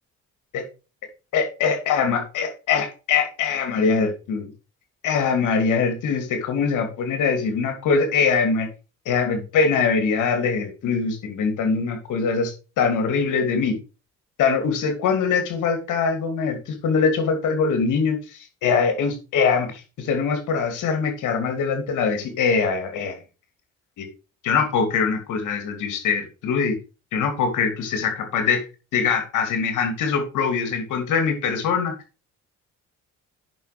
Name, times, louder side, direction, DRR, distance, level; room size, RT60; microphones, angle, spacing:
voice 1, 1.3-4.5 5.0-8.7 9.1-13.8 14.4-23.2 24.0-24.1 24.4-26.7 27.1-28.6 28.9-31.9, left 5 dB, 85° left, 6 dB, 2.8 m, -23 dB
9.3 x 6.2 x 5.0 m, 0.32 s
cardioid pair, 90°, 30 cm